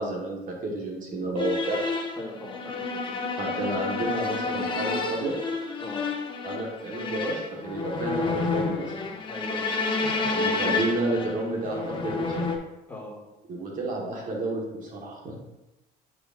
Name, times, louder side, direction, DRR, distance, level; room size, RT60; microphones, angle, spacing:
voice 1, 0.0-1.8 3.4-5.4 6.4-8.9 10.3-12.4 13.5-15.4, right 2 dB, 50° right, -1 dB, 1.5 m, -31 dB
sound 1, 1.4-12.6, left 3 dB, 30° left, 1.0 m, -30 dB
voice 2, 2.2-3.2 5.8-6.0 9.3-10.1 11.6-11.8 12.9-13.1, left 1 dB, 10° left, -3 dB, 2.0 m, -41 dB
9.7 x 4.9 x 2.5 m, 0.97 s
cardioid pair, 110°, 17 cm